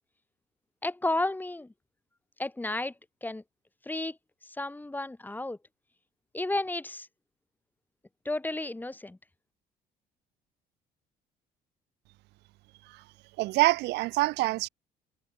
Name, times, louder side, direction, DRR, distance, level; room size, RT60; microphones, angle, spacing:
voice 1, 0.8-1.7 2.4-2.9 3.2-3.4 3.9-4.2 4.4-5.6 6.3-7.1 8.3-9.2, left 2 dB, 10° left, 3.7 m, -32 dB
voice 2, 13.4-14.7, right 20 dB, 90° right, 2.5 m, -25 dB
cardioid pair, 110°, 17 cm